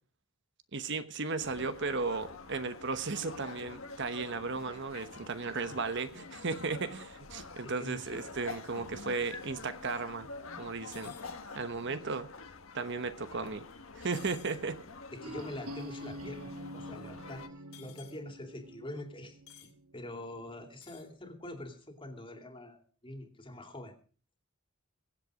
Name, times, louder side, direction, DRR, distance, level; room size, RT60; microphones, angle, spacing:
voice 1, 0.7-10.3 10.6-11.1 11.5-12.3 12.7-13.6 14.0-14.8, right 4 dB, 55° right, 11 dB, 1.1 m, -35 dB
sound 1, 1.4-17.5, left 4 dB, 70° left, 1.5 m, -47 dB
voice 2, 7.6-8.4 8.8-9.1 13.4-13.5 15.1-17.4 17.7-23.9, left 1 dB, 25° left, 5 dB, 2.7 m, -45 dB
sound 2, 10.9-11.3 14.1-14.6 17.7-18.2 19.5-19.7 20.7-21.1, left 11 dB, 85° left, 3.0 m, -54 dB
sound 3, 15.2-21.0, right 1 dB, 80° right, 1.3 m, -47 dB
23.0 x 8.2 x 5.0 m, 0.39 s
head